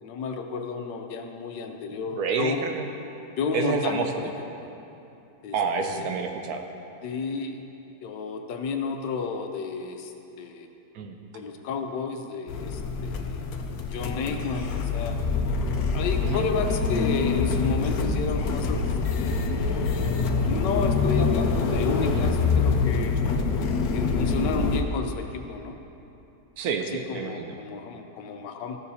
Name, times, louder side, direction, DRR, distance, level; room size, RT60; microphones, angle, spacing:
voice 1, 0.0-2.7 3.4-4.7 5.4-5.6 5.9-6.1 7.0-7.6 8.0-10.7 11.3-13.4 13.9-15.2 15.9-18.9 19.2-20.1 20.5-23.2 23.9-25.8 26.9-28.8, left 5 dB, 85° left, 5 dB, 1.3 m, -32 dB
voice 2, 2.2-2.8 3.5-4.3 5.5-6.6 10.9-11.2 16.2-16.4 22.0-22.2 26.6-27.5, right 5 dB, 70° right, 5 dB, 1.0 m, -28 dB
sound 1, 12.5-24.8, left 4 dB, 65° left, 1.0 m, -25 dB
14.5 x 7.0 x 2.7 m, 2.9 s
omnidirectional pair, 1.9 m